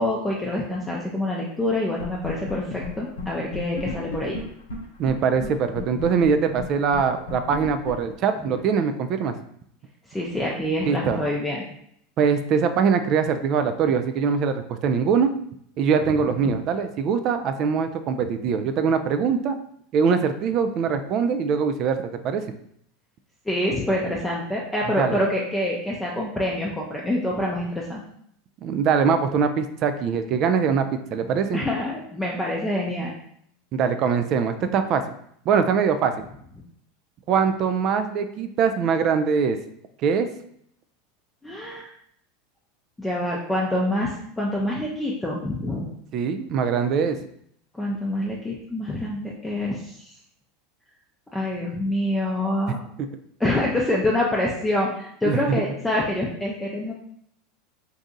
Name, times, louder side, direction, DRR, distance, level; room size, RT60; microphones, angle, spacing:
voice 1, 0.0-4.4 8.4-8.6 10.1-11.6 16.4-16.5 23.5-28.0 31.5-33.1 41.4-41.9 43.0-45.9 47.7-50.1 51.3-52.8 53.4-56.9, left 1 dB, 10° left, -3 dB, 0.5 m, -26 dB
sound 1, 2.0-2.5 2.8-2.9 3.2-3.3 3.5-5.1 5.4-5.5 5.7-8.7, left 3 dB, 75° left, 0.7 m, -33 dB
voice 2, 5.0-9.3 10.9-11.2 12.2-15.3 15.8-19.6 19.9-22.4 25.0-25.2 28.6-31.6 33.7-35.0 35.5-36.2 37.3-39.6 40.0-40.3 46.1-47.2 55.2-55.6, right 6 dB, 45° right, 9 dB, 0.3 m, -22 dB
2.7 x 2.4 x 3.8 m, 0.69 s
hypercardioid pair, 85°, 0 cm